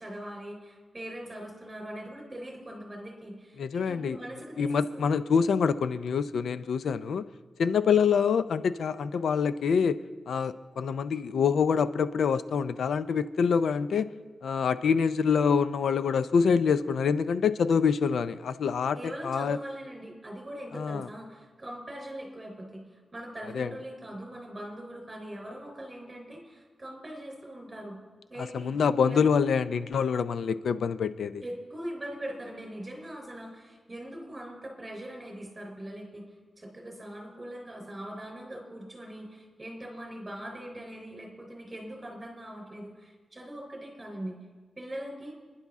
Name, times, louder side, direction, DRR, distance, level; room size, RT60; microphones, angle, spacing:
voice 1, 0.0-5.1 18.9-28.0 28.3-28.8 29.1-29.2 31.4-36.2 36.6-44.4 44.8-45.3, right 1 dB, 20° right, 1 dB, 3.7 m, -41 dB
voice 2, 3.6-4.2 4.6-7.2 7.6-10.0 10.3-14.1 14.4-19.6 20.7-21.1 23.5-23.7 28.4-31.4, left 6 dB, 85° left, 13 dB, 0.5 m, -26 dB
28.5 x 10.5 x 3.6 m, 1.4 s
wide cardioid pair, 150°, 0 cm